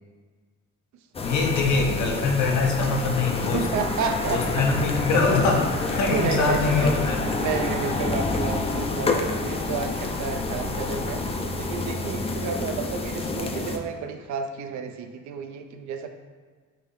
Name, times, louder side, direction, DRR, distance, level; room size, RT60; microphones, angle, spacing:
sound 1, 1.1-13.8, left 3 dB, 20° left, 0.3 m, -28 dB
voice 1, 1.2-3.6 4.3-7.3, left 4 dB, 75° left, 1 dB, 0.7 m, -23 dB
voice 2, 3.5-4.7 5.1-5.2 6.1-16.1, right 6 dB, 70° right, 6 dB, 0.5 m, -31 dB
4.7 x 2.7 x 3.1 m, 1.5 s
cardioid pair, 90°, 30 cm